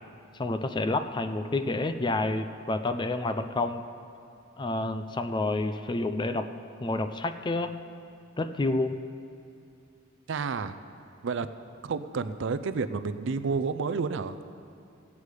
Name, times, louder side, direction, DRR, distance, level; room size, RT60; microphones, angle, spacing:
voice 1, 0.4-3.8 4.6-6.5 6.8-7.8 8.4-9.0, left 2 dB, 25° left, 9 dB, 0.4 m, -29 dB
voice 2, 10.3-10.8 11.2-11.5 11.8-14.4, right 4 dB, 65° right, 12 dB, 0.4 m, -30 dB
15.5 x 8.3 x 4.8 m, 2.5 s
head